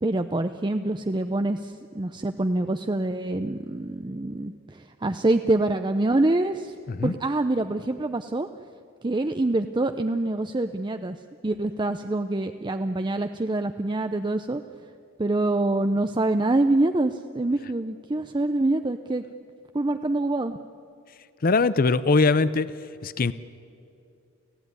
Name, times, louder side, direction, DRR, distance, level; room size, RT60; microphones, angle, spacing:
voice 1, 0.0-6.7 7.0-8.5 9.0-11.2 11.4-14.6 15.2-19.2 19.7-20.6, right 2 dB, 20° right, 8 dB, 0.6 m, -25 dB
voice 2, 21.4-22.7 23.0-23.3, left 3 dB, 45° left, 16 dB, 0.6 m, -21 dB
29.5 x 15.5 x 9.6 m, 2.6 s
head